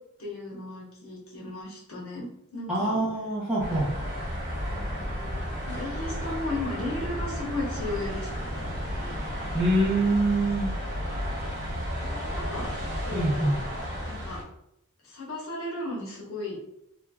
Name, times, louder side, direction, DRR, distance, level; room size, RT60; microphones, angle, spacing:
voice 1, 0.2-3.0 5.7-8.5 8.8-9.2 12.0-12.7 13.0-13.5 14.0-14.4 15.0-16.6, left 2 dB, 70° left, -4 dB, 1.0 m, -35 dB
voice 2, 2.7-3.9 9.5-10.7 13.1-13.6, right 1 dB, 5° right, -11 dB, 0.6 m, -25 dB
sound 1, 3.6-14.4, equal, 35° right, 1.0 m, -33 dB
3.1 x 2.3 x 2.2 m, 0.78 s
head